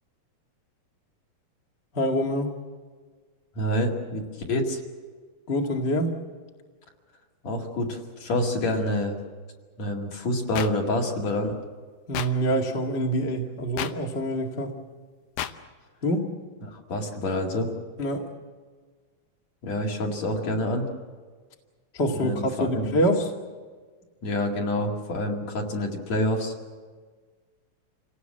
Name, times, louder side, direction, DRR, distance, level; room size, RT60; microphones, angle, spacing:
voice 1, 1.9-2.5 5.5-6.1 12.1-14.7 16.0-16.3 18.0-18.2 21.9-23.3, equal, 25° left, 2 dB, 1.6 m, -25 dB
voice 2, 3.6-4.2 4.5-4.8 7.4-9.2 9.8-11.6 16.7-17.7 19.6-20.9 22.1-22.9 24.2-26.5, left 1 dB, 50° left, 0 dB, 3.3 m, -27 dB
sound 1, 10.5-10.7 12.1-12.3 13.8-13.9 15.4-15.5, left 11 dB, 70° left, 2.1 m, -30 dB
27.5 x 18.0 x 7.6 m, 1.5 s
omnidirectional pair, 4.2 m